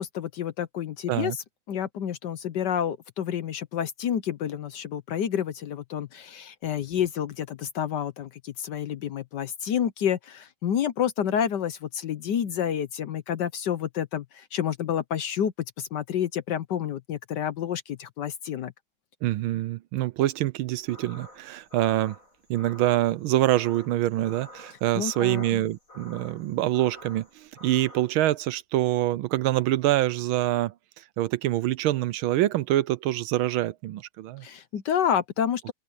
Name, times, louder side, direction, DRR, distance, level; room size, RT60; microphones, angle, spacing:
voice 1, 0.0-1.4 1.7-18.7 24.9-25.6 34.4-35.7, left 9 dB, 65° left, 1.2 m, -29 dB
voice 2, 19.2-22.1 22.5-30.7 31.2-34.4, right 14 dB, 75° right, 1.4 m, -25 dB
sound 1, 20.8-28.2, left 1 dB, 35° left, 8.1 m, -49 dB
omnidirectional pair, 2.4 m